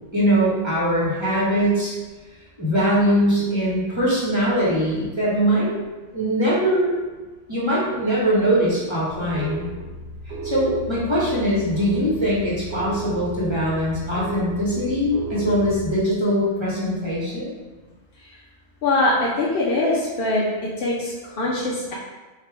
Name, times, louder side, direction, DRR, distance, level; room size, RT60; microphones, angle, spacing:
voice 1, 0.1-1.9 2.6-5.7 6.1-6.9 7.5-9.7 10.4-17.5, equal, 20° right, -8 dB, 1.3 m, -21 dB
sound 1, 9.1-15.9, right 3 dB, 65° right, 0.9 m, -33 dB
voice 2, 18.8-20.4 20.8-21.9, left 2 dB, 55° left, -5 dB, 0.8 m, -22 dB
3.4 x 2.8 x 4.6 m, 1.2 s
omnidirectional pair, 1.3 m